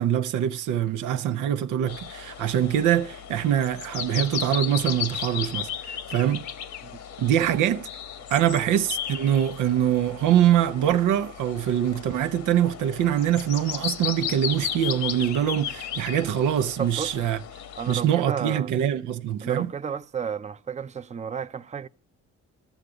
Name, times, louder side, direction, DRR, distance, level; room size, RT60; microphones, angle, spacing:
voice 1, 0.0-6.5 7.2-7.9 8.3-17.4 17.9-19.7, right 10 dB, 90° right, 0.8 m, -24 dB
sound 1, 1.9-18.0, left 9 dB, 70° left, 1.3 m, -35 dB
voice 2, 16.8-17.2 17.8-18.7 19.4-21.9, right 7 dB, 25° right, 0.6 m, -32 dB
13.5 x 8.1 x 4.9 m
cardioid pair, 90°, 30 cm